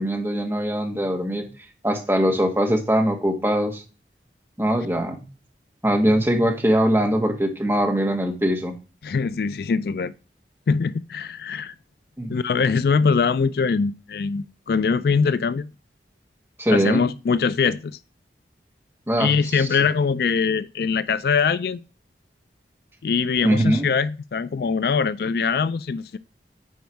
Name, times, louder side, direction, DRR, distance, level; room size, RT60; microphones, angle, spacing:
voice 1, 0.0-1.5 1.8-3.8 4.6-5.2 5.8-8.7 12.2-12.3 16.6-17.0 19.1-19.7 23.4-23.9, equal, 15° right, 1.5 m, -21 dB
voice 2, 9.0-10.1 10.7-11.7 12.3-15.7 16.7-18.0 19.2-21.8 23.0-26.2, left 5 dB, 60° left, 0.3 m, -22 dB
9.3 x 4.7 x 4.6 m
head